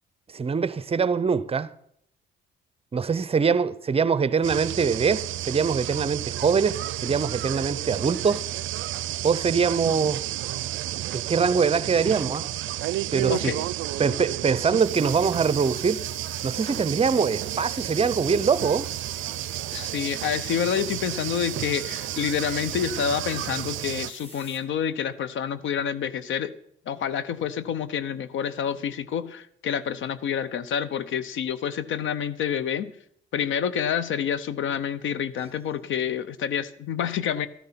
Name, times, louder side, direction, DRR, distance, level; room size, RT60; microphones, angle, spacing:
voice 1, 0.3-1.7 2.9-8.4 9.2-10.2 11.1-12.5 13.1-13.5 14.0-16.0 16.4-18.9, right 5 dB, 30° right, 0.6 m, -23 dB
sound 1, 4.4-24.1, right 15 dB, 80° right, 0.4 m, -32 dB
voice 2, 13.3-13.6 19.7-26.5 26.9-32.9 33.3-37.5, left 8 dB, 75° left, 0.8 m, -28 dB
sound 2, 14.7-24.6, left 1 dB, 30° left, 3.1 m, -46 dB
12.5 x 10.5 x 5.8 m
cardioid pair, 90°, 20 cm